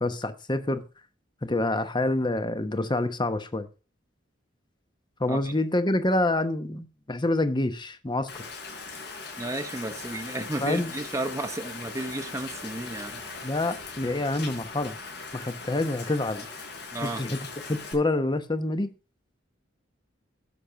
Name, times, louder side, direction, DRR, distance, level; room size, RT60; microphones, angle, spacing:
voice 1, 0.0-0.8 1.4-3.7 5.2-8.3 10.6-10.9 13.4-15.0 15.3-16.5 17.0-17.4 17.7-18.9, left 2 dB, 25° left, 1.0 m, -27 dB
Rain, 8.3-17.9, left 4 dB, 60° left, 4.7 m, -40 dB
voice 2, 9.4-13.2 16.9-17.2, right 2 dB, 15° right, 0.8 m, -33 dB
11.0 x 6.7 x 5.7 m
head